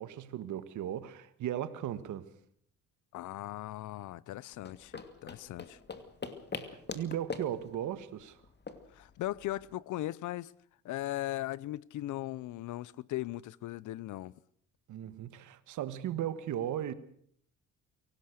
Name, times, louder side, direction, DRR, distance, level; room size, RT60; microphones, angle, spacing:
voice 1, 0.0-2.3 6.6-8.4 14.9-16.9, right 11 dB, 80° right, 1.6 m, -37 dB
voice 2, 3.1-5.8 8.9-10.5 10.8-14.3, left 15 dB, 80° left, 0.8 m, -38 dB
sound 1, 4.5-9.7, left 4 dB, 35° left, 2.5 m, -44 dB
23.5 x 18.0 x 6.6 m
cardioid pair, 90°, 30 cm